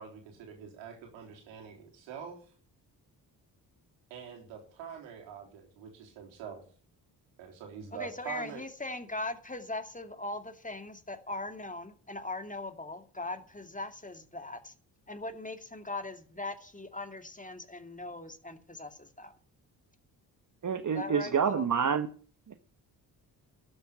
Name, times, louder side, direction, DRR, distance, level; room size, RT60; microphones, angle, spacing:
voice 1, 0.0-2.4 4.1-6.6 7.4-8.6, right 7 dB, 90° right, 3.6 m, -45 dB
voice 2, 7.9-14.7 15.1-19.3 20.9-21.7, left 2 dB, 15° left, 2.4 m, -40 dB
voice 3, 20.6-22.1 22.5-22.6, right 7 dB, 45° right, 1.2 m, -28 dB
12.5 x 7.9 x 9.3 m
supercardioid pair, 45°, 44 cm